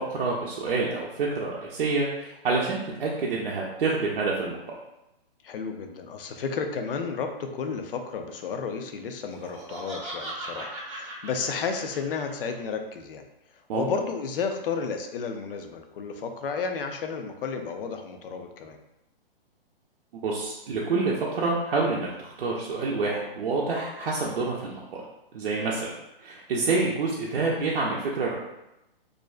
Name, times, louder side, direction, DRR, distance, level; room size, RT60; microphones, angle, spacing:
voice 1, 0.0-4.6 13.7-13.9 20.1-25.0 25.3-25.9 26.2-28.4, right 3 dB, 65° right, -4 dB, 0.5 m, -27 dB
voice 2, 5.4-13.2 13.7-18.8, left 5 dB, 65° left, 5 dB, 0.4 m, -32 dB
Laughter, 9.3-12.5, right 1 dB, 35° right, 0.8 m, -38 dB
2.5 x 2.1 x 2.3 m, 0.89 s
hypercardioid pair, 150°, 30 cm